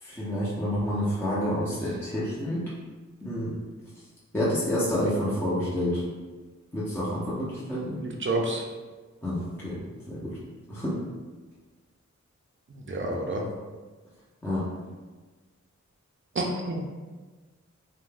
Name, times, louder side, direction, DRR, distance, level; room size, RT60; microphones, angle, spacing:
voice 1, 0.0-2.6 3.2-3.6 4.3-6.0 6.7-8.0 9.2-9.8 10.1-10.4 10.7-11.0 14.4-14.6, left 1 dB, 5° left, -9 dB, 0.6 m, -28 dB
voice 2, 8.0-8.6 12.9-13.4 16.4-16.8, right 2 dB, 40° right, 1 dB, 0.5 m, -28 dB
2.6 x 2.2 x 3.2 m, 1.3 s
wide cardioid pair, 65°, 30 cm